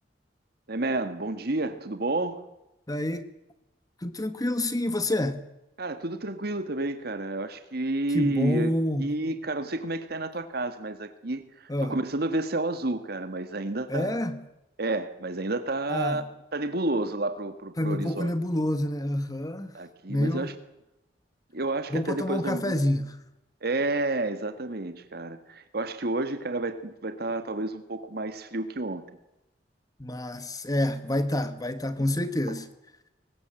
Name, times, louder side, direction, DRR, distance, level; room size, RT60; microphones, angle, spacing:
voice 1, 0.7-2.4 5.8-8.7 9.0-14.2 14.8-16.2 16.5-18.3 19.7-20.5 21.5-22.8 23.6-29.0, right 2 dB, 60° right, 1.6 m, -30 dB
voice 2, 2.9-3.2 4.0-5.4 8.1-9.1 11.7-12.0 13.9-14.4 15.9-16.2 17.8-19.7 20.1-20.5 21.9-23.2 30.0-32.7, left 1 dB, 20° left, 1.3 m, -28 dB
23.5 x 19.5 x 7.7 m
head